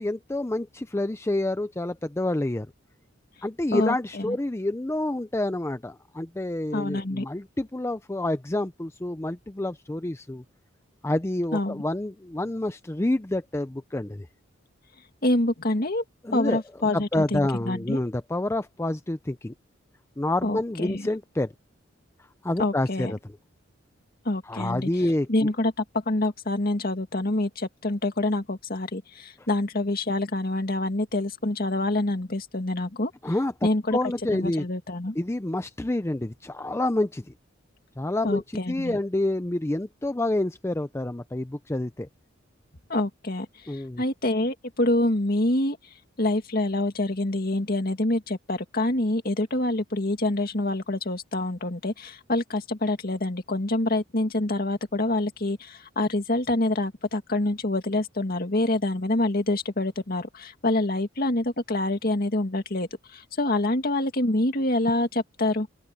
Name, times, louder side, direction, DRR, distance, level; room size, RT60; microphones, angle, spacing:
voice 1, 0.0-2.7 3.4-10.4 11.0-14.3 16.2-16.6 16.9-19.5 20.2-21.5 22.4-23.2 24.5-25.5 33.2-33.5 33.9-34.6 35.2-37.2 38.0-42.1 43.7-44.0, left 1 dB, 15° left, 0.5 m, -28 dB
voice 2, 3.7-4.4 6.7-7.3 11.5-11.8 15.2-16.0 16.3-18.0 20.4-21.1 22.6-23.1 24.2-24.9 25.3-33.1 33.6-34.0 34.3-35.2 38.2-39.0 42.9-45.8 46.2-65.7, left 2 dB, 50° left, 2.2 m, -26 dB
open air
head